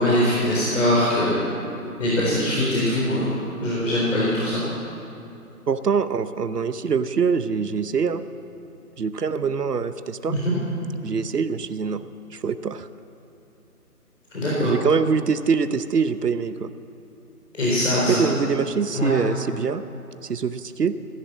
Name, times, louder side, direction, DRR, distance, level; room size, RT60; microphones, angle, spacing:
voice 1, 0.0-1.3 2.0-3.3 3.6-4.6 10.3-10.5 14.3-14.8 17.5-18.2 18.9-19.1, left 1 dB, 50° left, -6 dB, 3.9 m, -22 dB
voice 2, 5.7-8.2 9.0-10.4 11.0-12.9 14.6-16.7 18.2-19.8 20.2-20.9, right 5 dB, 80° right, 12 dB, 0.8 m, -24 dB
16.5 x 11.0 x 7.3 m, 2.8 s
figure-of-eight pair, 155°, 46 cm